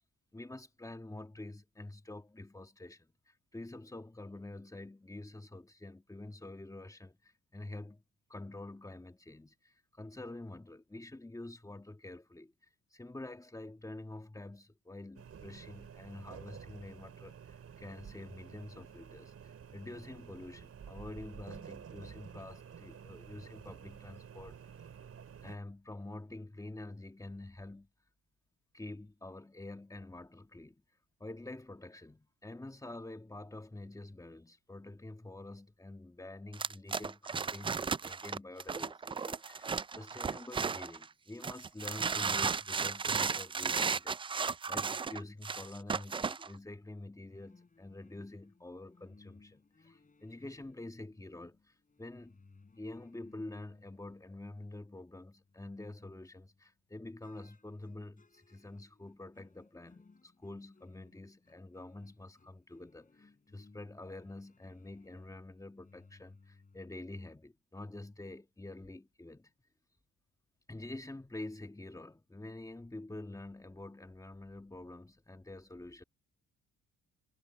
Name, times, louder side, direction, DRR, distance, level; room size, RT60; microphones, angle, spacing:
voice 1, 0.3-8.0 8.3-12.5 12.9-24.6 25.4-27.9 28.7-30.8 31.2-52.4 52.8-69.5 70.7-76.0, left 2 dB, 10° left, 1.8 m, -47 dB
sound 1, 15.2-25.6, right 7 dB, 50° right, 4.8 m, -51 dB
sound 2, 36.5-41.0 41.4-46.5, right 5 dB, 20° right, 0.3 m, -34 dB
sound 3, 47.3-54.8 55.1-56.7 57.2-67.0, left 4 dB, 25° left, 6.5 m, -63 dB
cardioid pair, 90°, 30 cm